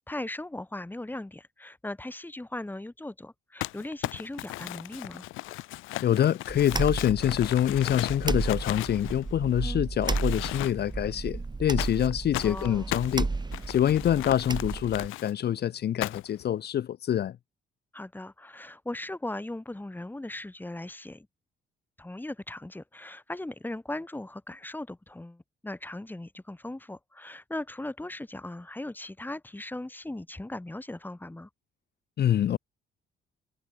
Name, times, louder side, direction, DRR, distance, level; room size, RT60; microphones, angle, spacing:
voice 1, 0.1-5.3 9.6-9.8 12.4-12.9 17.9-21.3 22.0-31.5, left 1 dB, 10° left, 1.9 m, -38 dB
Crumpling crinkling, 3.6-9.6 10.0-11.0 11.8-15.3 16.0-16.4, left 18 dB, 85° left, 0.4 m, -36 dB
voice 2, 6.0-13.3 13.7-17.4 32.2-32.6, left 10 dB, 55° left, 0.7 m, -26 dB
sound 1, 6.5-15.1, right 3 dB, 20° right, 2.1 m, -33 dB
cardioid pair, 90°, 20 cm